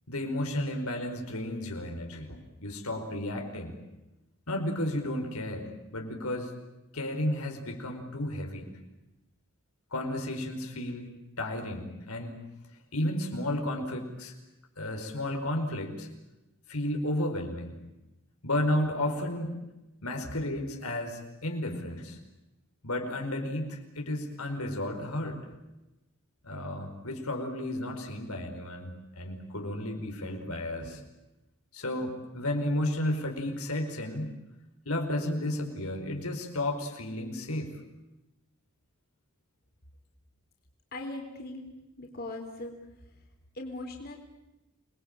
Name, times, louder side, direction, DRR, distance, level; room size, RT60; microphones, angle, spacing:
voice 1, 0.1-3.8 4.5-5.7 5.9-6.5 6.9-8.7 9.9-11.1 11.4-12.4 12.9-14.3 14.8-16.1 16.7-17.8 18.4-19.5 20.0-22.2 22.8-25.4 26.4-31.0 31.7-34.3 34.8-37.7, left 1 dB, 85° left, 3 dB, 4.8 m, -32 dB
voice 2, 40.9-41.7 42.0-42.8 43.0-43.2 43.5-44.2, left 2 dB, 45° left, 2 dB, 3.9 m, -39 dB
28.5 x 21.0 x 9.0 m, 0.99 s
head